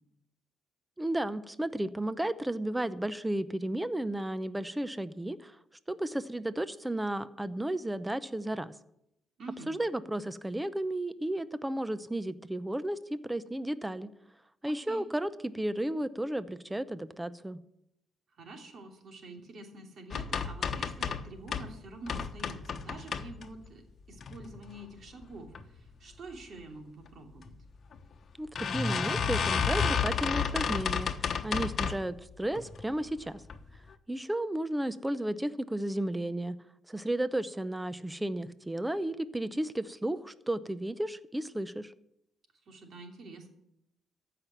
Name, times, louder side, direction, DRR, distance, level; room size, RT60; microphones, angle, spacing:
voice 1, 1.0-5.6 5.9-8.7 9.7-14.1 14.6-17.6 28.4-31.1 31.4-33.4 34.1-36.6 36.9-41.9, right 1 dB, 10° right, 15 dB, 0.6 m, -33 dB
voice 2, 9.4-9.7 14.7-15.0 18.4-23.8 24.1-27.5 42.7-43.5, right 2 dB, 55° right, 3 dB, 2.8 m, -47 dB
sound 1, 20.1-21.7 22.1-23.7 24.2-24.8 25.2-25.6 25.9-26.0 26.3-26.4 27.4-27.5 27.9-28.0 28.6-32.1 32.6-33.0 33.4-33.6 33.9-34.0, left 6 dB, 50° left, 1.1 m, -31 dB
14.5 x 5.9 x 9.2 m, 0.79 s
cardioid pair, 90°, 0 cm